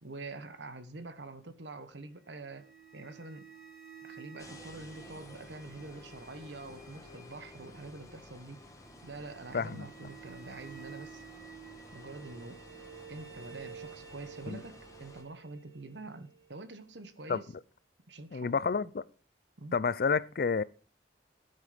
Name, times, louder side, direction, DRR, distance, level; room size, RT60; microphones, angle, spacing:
voice 1, 0.0-2.7 2.9-3.5 4.0-8.6 9.0-11.2 11.9-12.6 13.1-17.5 18.1-18.6 19.6-19.8, right 2 dB, 85° right, 1.2 m, -46 dB
sound 1, 2.2-17.1, right 6 dB, 60° right, 5.5 m, -52 dB
sound 2, 4.4-15.2, left 1 dB, 20° left, 1.5 m, -53 dB
voice 2, 9.5-9.9 14.5-14.6 17.3-17.4 18.3-19.0 19.7-20.6, left 5 dB, 55° left, 0.4 m, -29 dB
13.0 x 8.1 x 5.1 m
head